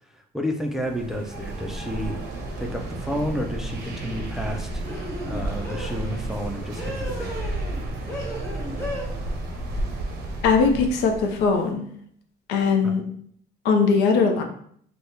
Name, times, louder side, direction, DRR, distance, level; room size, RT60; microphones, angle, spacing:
voice 1, 0.1-2.2 2.6-4.8 5.3-7.6 12.8-12.9, equal, ahead, 2 dB, 0.3 m, -31 dB
sound 1, 0.8-11.6, right 2 dB, 70° right, 0.7 m, -32 dB
sound 2, 3.1-3.4 4.8-6.0 6.7-7.8 8.1-9.1, left 1 dB, 20° left, 1.0 m, -35 dB
voice 2, 10.4-11.9 12.5-13.0 13.6-14.4, left 5 dB, 85° left, 4 dB, 0.5 m, -20 dB
3.5 x 2.0 x 2.8 m, 0.63 s
cardioid pair, 110°, 17 cm